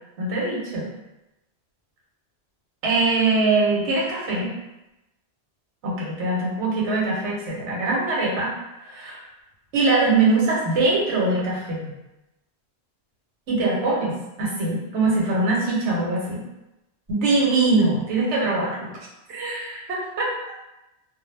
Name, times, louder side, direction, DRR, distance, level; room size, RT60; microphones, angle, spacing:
voice 1, 0.2-0.9 2.8-4.5 5.8-8.5 8.8-9.2 9.7-11.9 13.5-16.4 17.1-18.8 19.3-20.3, right 3 dB, 85° right, -4 dB, 1.0 m, -22 dB
2.2 x 2.0 x 3.1 m, 0.94 s
omnidirectional pair, 1.2 m